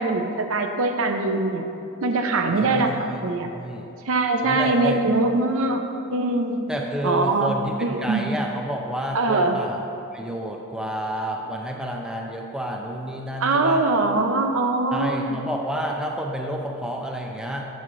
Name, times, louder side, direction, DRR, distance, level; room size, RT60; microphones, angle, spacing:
voice 1, 0.0-1.7 2.0-3.5 4.1-5.8 6.1-6.7 7.0-8.3 9.1-9.6 13.4-15.4, right 2 dB, 65° right, 5 dB, 0.5 m, -22 dB
voice 2, 2.6-3.9 4.4-5.0 6.7-9.8 10.1-13.8 14.9-17.6, right 1 dB, 5° right, 0 dB, 0.4 m, -30 dB
8.3 x 3.1 x 5.9 m, 2.6 s
head